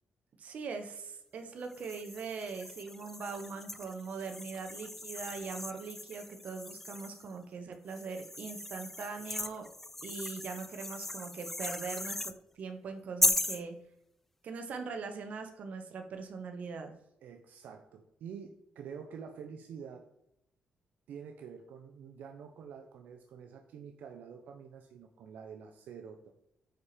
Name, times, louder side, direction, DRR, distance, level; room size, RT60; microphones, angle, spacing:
voice 1, 0.4-9.7 10.0-13.7 14.4-16.9, right 5 dB, 60° right, 5 dB, 1.3 m, -41 dB
sound 1, 1.7-7.3 7.9-12.4 13.2-13.6, left 1 dB, 10° left, 0.3 m, -37 dB
voice 2, 17.2-20.1 21.1-26.3, right 7 dB, 85° right, 4 dB, 0.8 m, -47 dB
9.4 x 5.2 x 4.4 m, 0.81 s
cardioid pair, 120°, 3 cm